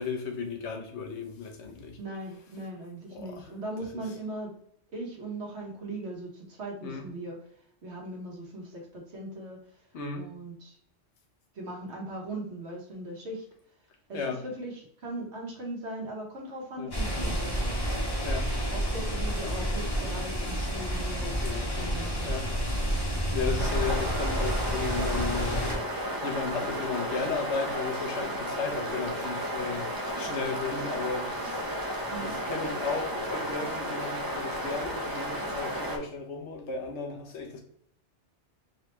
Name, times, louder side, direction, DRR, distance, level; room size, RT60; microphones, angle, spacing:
voice 1, 0.0-2.0 3.1-3.5 6.8-7.1 9.9-10.3 14.1-14.4 16.8-16.9 18.2-18.5 21.4-22.5 22.9-25.8 26.2-31.7 32.2-37.6, left 4 dB, 75° left, 1.1 m, -35 dB
voice 2, 2.0-4.5 4.9-7.4 7.8-9.6 10.1-10.8 11.5-13.4 14.1-17.8 18.7-21.5 21.8-22.3 32.1-32.4, right 1 dB, 75° right, 1.5 m, -39 dB
sound 1, 16.9-25.8, equal, 25° left, 0.9 m, -30 dB
sound 2, 23.6-36.0, equal, 25° right, 0.5 m, -33 dB
3.9 x 3.1 x 3.0 m
omnidirectional pair, 1.2 m